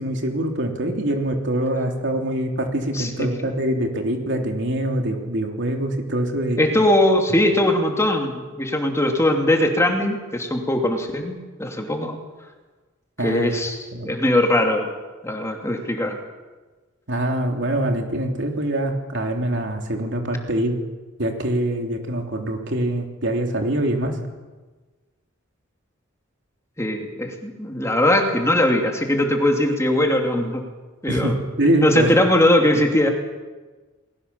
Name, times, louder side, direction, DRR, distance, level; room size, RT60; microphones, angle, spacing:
voice 1, 0.0-6.6 13.2-13.5 13.9-14.1 17.1-20.7 21.2-24.2 31.1-32.1, right 1 dB, 65° right, 3 dB, 3.3 m, -24 dB
voice 2, 2.9-3.5 6.6-12.2 13.2-14.9 15.2-16.2 26.8-30.6 31.0-31.4 31.8-33.1, left 1 dB, 15° left, 2 dB, 2.8 m, -20 dB
30.0 x 21.0 x 7.1 m, 1.3 s
head